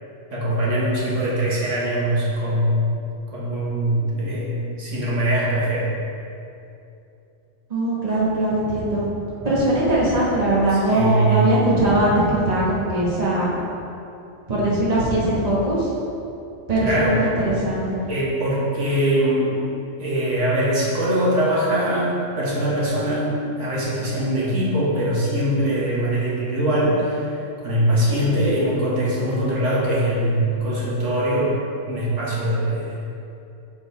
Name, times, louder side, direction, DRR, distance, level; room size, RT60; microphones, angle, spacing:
voice 1, 0.3-2.9 3.3-5.9 10.7-11.5 16.8-17.1 18.1-19.6 20.0-23.3 23.6-31.5 31.9-33.0, right 1 dB, 80° right, -6 dB, 1.6 m, -22 dB
voice 2, 7.7-9.2 9.4-13.6 14.5-15.9 16.7-18.0, right 1 dB, 35° right, -6 dB, 1.2 m, -20 dB
6.8 x 3.8 x 4.0 m, 2.7 s
omnidirectional pair, 1.2 m